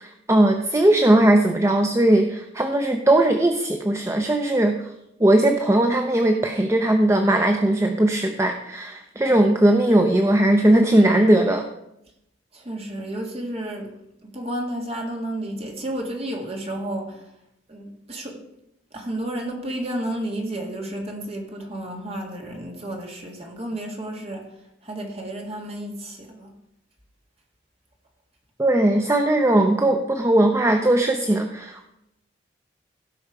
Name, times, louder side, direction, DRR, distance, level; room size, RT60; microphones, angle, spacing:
voice 1, 0.0-4.8 5.2-11.6 28.6-31.9, right 1 dB, 15° right, 0.6 m, -19 dB
voice 2, 12.5-14.0 14.2-17.3 17.7-18.4 18.9-24.5 24.8-26.5, right 1 dB, 30° right, 1.9 m, -31 dB
16.5 x 5.5 x 4.7 m
head